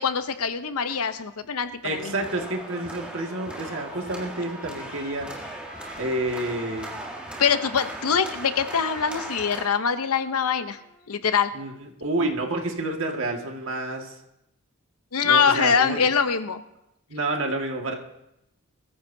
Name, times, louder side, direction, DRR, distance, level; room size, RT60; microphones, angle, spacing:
voice 1, 0.0-2.1 7.4-10.8 11.1-11.6 15.1-16.6, left 6 dB, 75° left, 10 dB, 0.8 m, -23 dB
voice 2, 1.8-5.3 6.0-6.9 11.5-14.2 15.2-16.0 17.1-17.9, right 2 dB, 60° right, 2 dB, 1.9 m, -29 dB
sound 1, 1.9-9.6, right 1 dB, 5° right, 1.7 m, -38 dB
Trumpet, 3.0-11.1, left 3 dB, 35° left, 1.8 m, -49 dB
22.5 x 14.5 x 2.7 m, 0.85 s
head